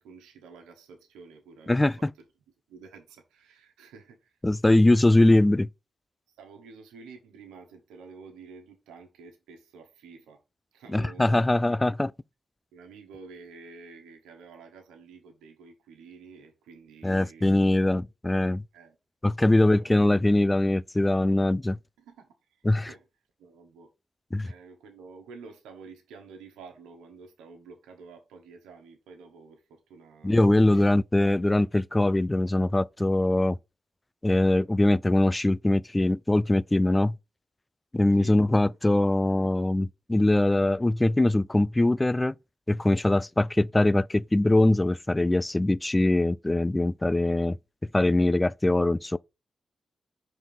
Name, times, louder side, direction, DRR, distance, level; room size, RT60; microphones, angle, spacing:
voice 1, 0.0-2.3 2.7-4.4 4.8-5.0 6.3-10.4 10.7-11.5 11.8-11.9 12.7-17.6 18.7-19.0 19.4-20.0 22.0-23.1 23.4-23.9 24.3-30.9 38.1-38.4 38.7-38.9, right 5 dB, 90° right, 1.3 m, -50 dB
voice 2, 1.7-2.1 4.4-5.7 10.9-12.1 17.0-18.6 19.2-21.8 22.7-22.9 24.3-24.5 30.2-33.6 34.2-37.2 37.9-42.3 42.7-47.6 47.9-49.2, left 1 dB, 20° left, 0.4 m, -22 dB
5.0 x 4.0 x 5.7 m
supercardioid pair, 45°, 0 cm